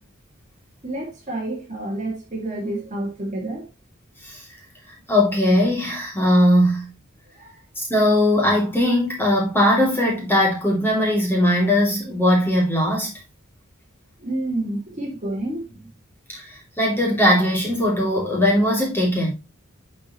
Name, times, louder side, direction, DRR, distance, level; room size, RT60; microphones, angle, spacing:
voice 1, 0.8-3.7 7.4-7.5 14.2-15.9, right 1 dB, 35° right, 2.4 m, -29 dB
voice 2, 5.1-6.9 7.8-13.1 16.8-19.3, left 1 dB, 10° left, 2.8 m, -19 dB
10.5 x 5.1 x 3.1 m
head